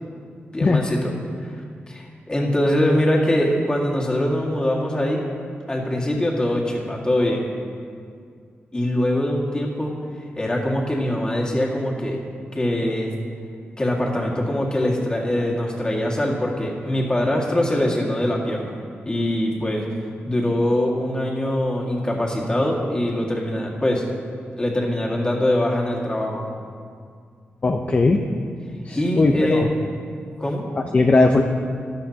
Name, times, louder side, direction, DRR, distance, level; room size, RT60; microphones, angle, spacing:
voice 1, 0.5-1.1 1.4-1.5 1.9-5.2 5.7-7.4 8.7-9.9 10.4-12.2 12.5-13.1 13.8-18.8 19.0-19.8 20.2-24.0 24.5-26.4 28.9-29.6 30.4-30.6, left 1 dB, 20° left, -2 dB, 2.0 m, -23 dB
voice 2, 27.6-28.2 28.9-29.7 30.9-31.4, left 3 dB, 35° left, 3 dB, 0.7 m, -18 dB
13.5 x 12.0 x 2.9 m, 2.2 s
cardioid pair, 95°, 4 cm